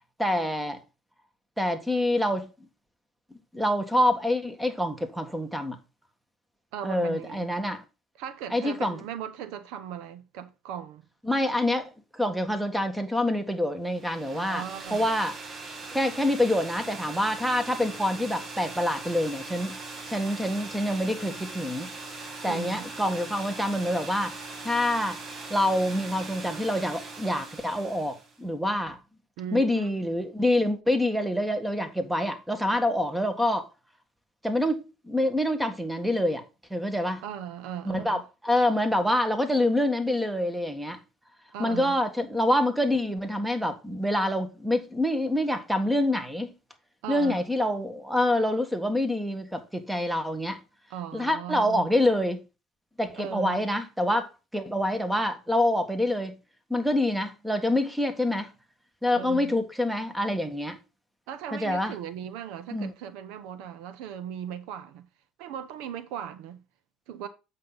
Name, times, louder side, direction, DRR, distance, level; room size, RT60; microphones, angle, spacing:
voice 1, 0.2-0.8 1.6-2.5 3.3-5.8 6.8-7.8 8.5-9.0 11.2-14.6 14.9-15.3 15.9-19.8 20.1-21.9 22.2-24.4 24.6-25.2 25.5-29.0 29.5-33.7 34.4-34.8 35.0-36.4 36.7-37.2 37.8-41.0 41.6-46.5 47.1-50.6 51.1-52.4 53.0-56.4 56.7-58.5 59.0-60.8 61.5-61.9 62.7-62.9, left 1 dB, 5° right, 1.6 m, -26 dB
voice 2, 6.7-7.5 8.2-11.0 14.3-15.1 22.5-22.8 29.4-29.9 37.2-38.2 41.5-42.0 47.0-47.4 50.9-51.9 53.2-53.6 59.1-59.5 61.3-65.1 65.4-66.6 67.1-67.3, right 9 dB, 80° right, 0.9 m, -38 dB
sound 1, 13.9-28.4, right 3 dB, 40° right, 1.9 m, -40 dB
7.9 x 5.6 x 4.0 m
supercardioid pair, 90°, 0 cm